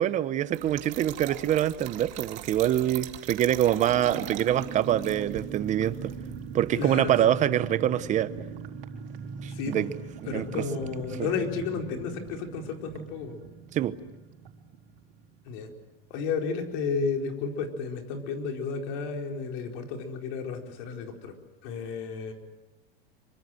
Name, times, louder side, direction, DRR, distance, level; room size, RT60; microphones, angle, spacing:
voice 1, 0.0-6.1 6.5-8.3 9.4-9.9 10.2-10.7 13.7-14.0, right 11 dB, 25° right, 15 dB, 0.9 m, -25 dB
Trickle dribble / Fill (with liquid), 0.5-7.3, right 14 dB, 40° right, 2.3 m, -42 dB
sound 1, 3.9-16.2 16.5-16.6 16.9-17.1, right 6 dB, 80° right, 4.5 m, -41 dB
voice 2, 6.8-7.1 9.5-9.9 10.3-13.4 15.5-15.7 16.1-21.3 21.6-22.3, left 5 dB, 50° left, 3 dB, 4.5 m, -32 dB
26.0 x 24.0 x 7.9 m, 1.0 s
supercardioid pair, 150°, 29 cm